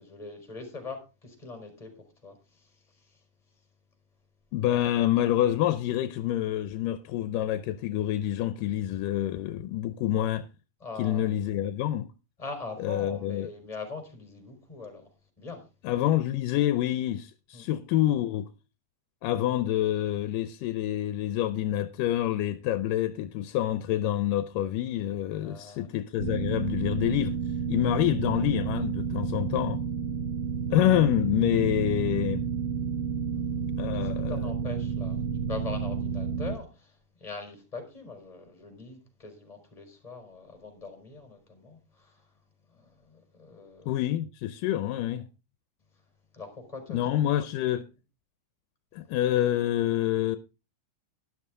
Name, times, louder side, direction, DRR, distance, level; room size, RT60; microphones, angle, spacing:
voice 1, 0.0-1.9 2.2-3.2 10.8-11.3 12.4-15.1 15.4-15.7 17.5-17.7 25.4-26.0 27.9-28.0 33.3-35.2 35.5-42.3 42.7-43.9 46.3-47.3, left 4 dB, 10° left, 3.8 m, -42 dB
voice 2, 4.5-10.5 11.0-12.1 12.8-13.5 15.8-18.5 19.2-27.4 27.7-29.8 30.7-32.4 33.8-34.4 43.9-45.2 46.9-47.8 48.9-50.4, left 12 dB, 85° left, 2.3 m, -27 dB
sound 1, 26.2-36.6, right 6 dB, 60° right, 1.5 m, -31 dB
12.0 x 11.5 x 3.6 m
omnidirectional pair, 3.8 m